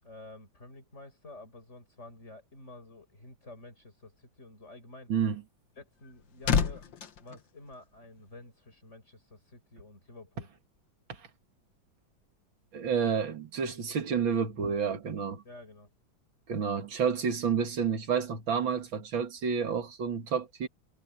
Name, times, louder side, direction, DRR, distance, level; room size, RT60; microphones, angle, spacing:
voice 1, 0.0-5.1 5.7-6.9 7.2-10.5 15.4-15.9, left 2 dB, 35° left, 6.5 m, -50 dB
voice 2, 5.1-5.4 12.7-15.4 16.5-20.7, right 6 dB, 75° right, 2.8 m, -30 dB
sound 1, 5.7-8.4 8.7-8.9, left 6 dB, 70° left, 2.1 m, -32 dB
omnidirectional pair, 2.1 m